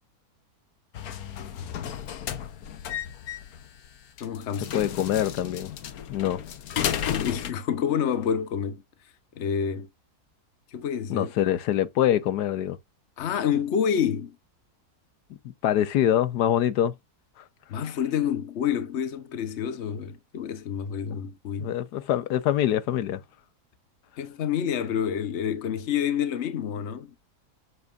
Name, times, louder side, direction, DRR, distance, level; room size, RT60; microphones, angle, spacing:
sound 1, 0.9-7.5, left 9 dB, 70° left, 1.3 m, -33 dB
voice 1, 4.2-4.8 7.0-8.8 9.4-9.9 10.7-11.3 13.2-14.4 17.7-21.7 24.2-27.1, left 8 dB, 50° left, 1.1 m, -28 dB
voice 2, 4.7-5.7 6.1-6.4 11.1-12.8 15.6-16.9 21.6-23.2, left 11 dB, 90° left, 1.3 m, -24 dB
8.1 x 7.1 x 2.5 m
omnidirectional pair, 1.7 m